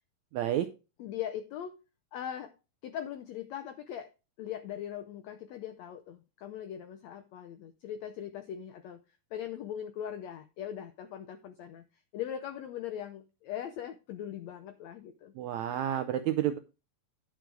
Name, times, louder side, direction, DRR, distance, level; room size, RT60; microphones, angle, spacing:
voice 1, 0.3-0.7 15.4-16.6, right 11 dB, 80° right, 9 dB, 1.6 m, -30 dB
voice 2, 1.0-1.7 2.1-2.5 2.8-4.1 4.4-9.0 9.3-11.8 12.1-15.3, left 10 dB, 80° left, 9 dB, 1.5 m, -40 dB
10.5 x 6.3 x 4.6 m, 0.29 s
omnidirectional pair, 4.0 m